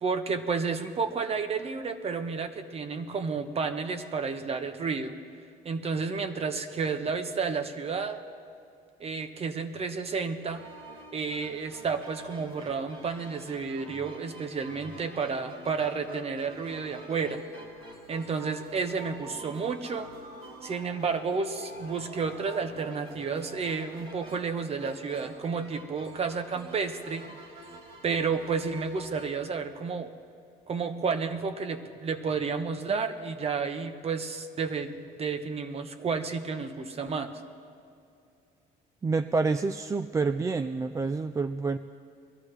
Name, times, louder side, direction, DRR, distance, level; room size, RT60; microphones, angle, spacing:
voice 1, 0.0-5.1 5.6-8.2 9.0-10.6 11.1-17.4 18.1-20.1 20.6-27.2 28.0-30.1 30.7-37.3, right 5 dB, 35° right, 8 dB, 1.0 m, -31 dB
sound 1, 10.4-29.3, right 2 dB, 65° right, 2.4 m, -47 dB
voice 2, 39.0-41.8, right 4 dB, 20° right, 10 dB, 0.3 m, -28 dB
21.5 x 13.5 x 3.3 m, 2.5 s
cardioid pair, 110°, 17 cm